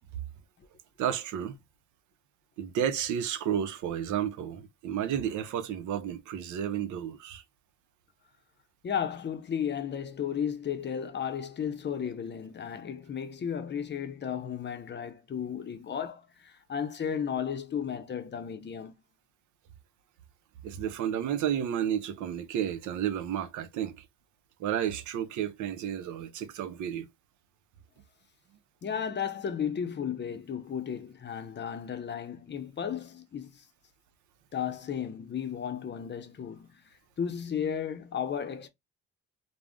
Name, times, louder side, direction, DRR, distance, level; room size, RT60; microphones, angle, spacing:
voice 1, 1.0-1.6 2.6-7.4 20.6-24.0 24.6-27.1, right 9 dB, 75° right, 0.5 m, -32 dB
voice 2, 8.8-18.9 28.8-33.6 34.5-36.7 37.2-38.7, left 8 dB, 35° left, 0.6 m, -34 dB
2.4 x 2.0 x 3.4 m
cardioid pair, 90°, 30 cm